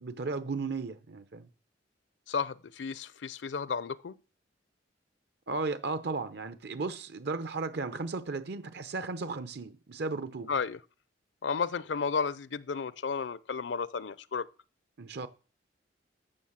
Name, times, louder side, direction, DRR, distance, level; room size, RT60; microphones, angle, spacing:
voice 1, 0.0-1.5 5.5-10.5 15.0-15.3, right 3 dB, 65° right, 0.8 m, -35 dB
voice 2, 2.3-4.2 10.5-10.8 11.4-14.5, left 5 dB, 75° left, 0.5 m, -33 dB
13.0 x 6.6 x 7.3 m
head